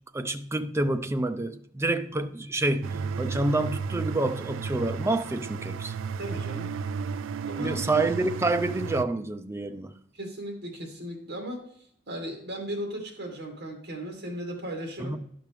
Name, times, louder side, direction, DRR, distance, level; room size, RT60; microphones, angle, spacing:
voice 1, 0.1-5.9 7.6-9.9 15.0-15.2, right 2 dB, 15° right, 0.4 m, -28 dB
sound 1, 2.8-9.0, right 5 dB, 85° right, 0.3 m, -33 dB
voice 2, 6.2-6.7 7.4-7.8 10.1-11.6 12.1-15.2, right 1 dB, 60° right, 2.2 m, -36 dB
11.5 x 6.0 x 3.5 m
head